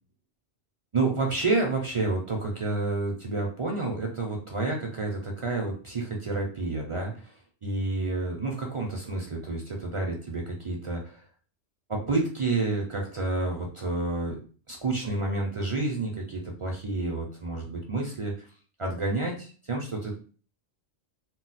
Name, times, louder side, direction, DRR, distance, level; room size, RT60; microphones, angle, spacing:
voice 1, 0.9-7.4 7.6-11.2 11.9-14.4 14.7-18.5 18.8-20.2, right 2 dB, 45° right, 0 dB, 0.4 m, -29 dB
2.2 x 2.1 x 3.9 m, 0.40 s
omnidirectional pair, 1.2 m